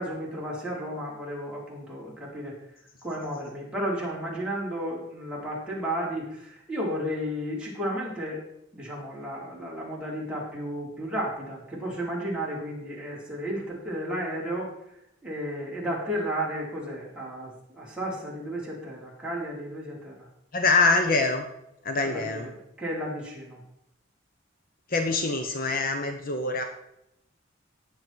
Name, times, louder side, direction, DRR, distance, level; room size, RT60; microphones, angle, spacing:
voice 1, 0.0-2.5 3.0-8.4 8.7-14.7 15.2-20.3 22.0-22.5 22.8-23.6, equal, 5° right, -6 dB, 4.6 m, -33 dB
voice 2, 20.5-21.4 21.8-22.5 24.9-26.6, left 3 dB, 50° left, 5 dB, 1.1 m, -24 dB
18.0 x 7.3 x 4.6 m, 0.81 s
head